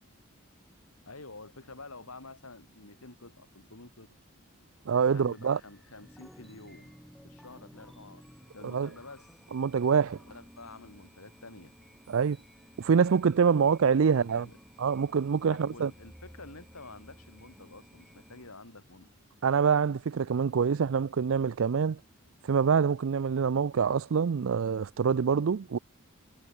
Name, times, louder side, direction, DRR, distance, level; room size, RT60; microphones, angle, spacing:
voice 1, 1.1-4.2 5.1-6.9 7.2-8.2 8.5-9.3 10.2-11.7 13.6-13.7 14.0-14.6 15.5-19.1, left 3 dB, 85° left, 4.5 m, -49 dB
sound 1, 4.9-18.5, equal, ahead, 4.3 m, -55 dB
voice 2, 4.9-5.6 8.7-8.9 9.5-10.2 12.1-12.4 12.8-14.5 14.8-15.9 19.4-22.0 22.4-25.8, right 6 dB, 65° right, 0.4 m, -25 dB
head